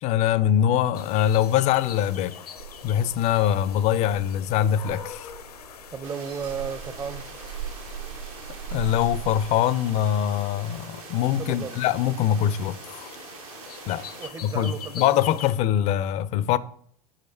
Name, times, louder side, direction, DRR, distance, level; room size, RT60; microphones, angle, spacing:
voice 1, 0.0-2.4 2.8-5.3 8.5-13.1 13.9-14.1 14.4-16.6, left 10 dB, 35° left, 0.4 m, -23 dB
sound 1, 0.9-15.5, left 8 dB, 80° left, 0.6 m, -44 dB
sound 2, 2.6-9.5, right 8 dB, 80° right, 1.5 m, -40 dB
voice 2, 5.9-7.3 11.5-11.8 14.2-15.3, right 6 dB, 20° right, 0.5 m, -34 dB
sound 3, 6.0-14.3, right 10 dB, 60° right, 0.6 m, -45 dB
6.6 x 4.8 x 4.1 m
figure-of-eight pair, 85°, 20 cm